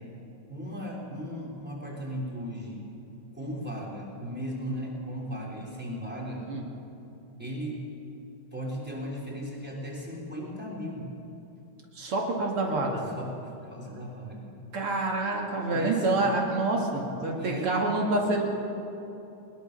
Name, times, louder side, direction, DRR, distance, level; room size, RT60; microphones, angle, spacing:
voice 1, 0.5-2.9 3.3-6.4 7.4-7.9 8.5-11.1 13.1-14.6 15.7-16.3 17.4-17.9, equal, 5° right, -3 dB, 3.6 m, -36 dB
voice 2, 11.9-13.1 14.7-18.4, right 2 dB, 80° right, 0 dB, 3.1 m, -27 dB
21.0 x 19.5 x 6.7 m, 2.9 s
omnidirectional pair, 2.4 m